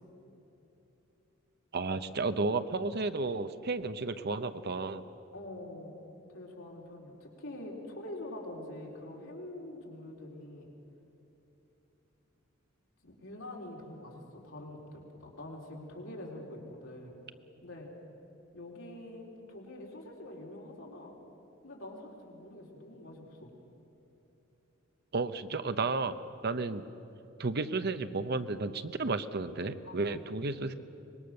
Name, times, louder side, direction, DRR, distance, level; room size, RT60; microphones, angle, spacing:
voice 1, 1.7-5.0 25.1-26.9 27.4-30.7, right 3 dB, 55° right, 11 dB, 0.8 m, -32 dB
voice 2, 5.3-6.0 6.3-10.7 13.0-17.2 17.6-17.9 18.5-21.1 21.6-23.5 29.8-30.2, left 1 dB, 80° left, -2 dB, 3.9 m, -45 dB
24.0 x 21.0 x 6.6 m, 2.9 s
head